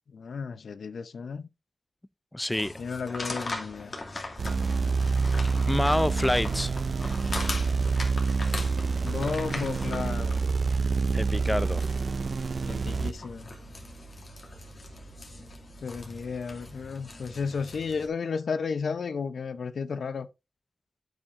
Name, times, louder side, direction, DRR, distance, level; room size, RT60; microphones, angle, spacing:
voice 1, 0.1-1.5 2.8-3.9 9.0-10.4 12.6-13.5 15.8-20.3, left 5 dB, 90° left, 0.6 m, -33 dB
voice 2, 2.3-2.8 5.7-6.8 7.3-7.5 11.1-11.8, left 1 dB, 15° left, 0.4 m, -27 dB
sound 1, 2.5-18.1, left 2 dB, 55° left, 2.3 m, -40 dB
sound 2, 4.4-13.1, right 4 dB, 65° right, 0.4 m, -27 dB
8.9 x 8.7 x 2.5 m
cardioid pair, 65°, 0 cm